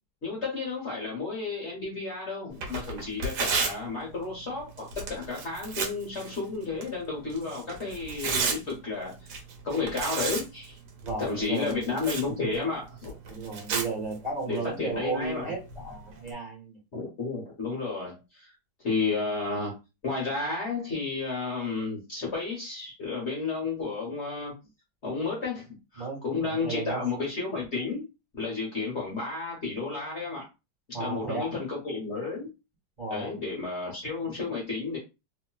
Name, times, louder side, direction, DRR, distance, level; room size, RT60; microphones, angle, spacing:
voice 1, 0.2-9.4 9.6-10.8 11.2-13.2 14.5-15.5 16.9-18.5 18.8-19.7 20.0-24.5 25.0-28.0 28.3-30.5 31.0-32.5 33.1-35.0, left 4 dB, 45° left, -3 dB, 1.1 m, -32 dB
Tearing, 2.5-16.3, right 4 dB, 70° right, 1.3 m, -36 dB
voice 2, 11.0-11.9 13.3-16.8 26.0-27.0 30.9-31.5 33.0-33.3, right 3 dB, 25° right, -3 dB, 1.3 m, -34 dB
3.0 x 2.8 x 2.3 m, 0.27 s
omnidirectional pair, 1.9 m